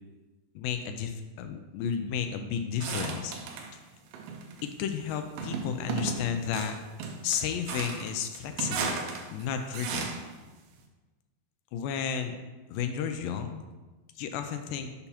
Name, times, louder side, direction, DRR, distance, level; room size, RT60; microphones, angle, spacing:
voice 1, 0.6-3.3 4.6-6.8 7.2-9.0 9.3-10.2 11.7-12.4 12.7-13.6 14.2-14.9, left 7 dB, 85° left, 6 dB, 2.0 m, -32 dB
sound 1, 2.8-3.7 4.1-4.7 5.4-10.3, right 5 dB, 85° right, 2.4 m, -35 dB
6.9 x 5.8 x 2.8 m, 1.2 s
omnidirectional pair, 4.5 m